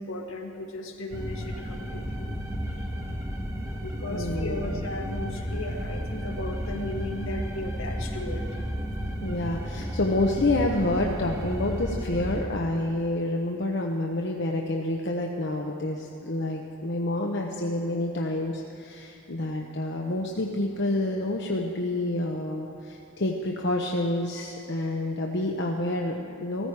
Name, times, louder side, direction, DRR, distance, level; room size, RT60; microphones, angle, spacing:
voice 1, 0.0-2.3 2.7-2.9 3.5-8.5, left 1 dB, 75° left, 2 dB, 1.6 m, -36 dB
sound 1, 1.1-12.4, equal, 15° right, 1.1 m, -33 dB
voice 2, 4.1-4.8 9.2-26.7, left 1 dB, 55° left, 0 dB, 0.8 m, -28 dB
15.5 x 14.5 x 4.8 m, 2.7 s
head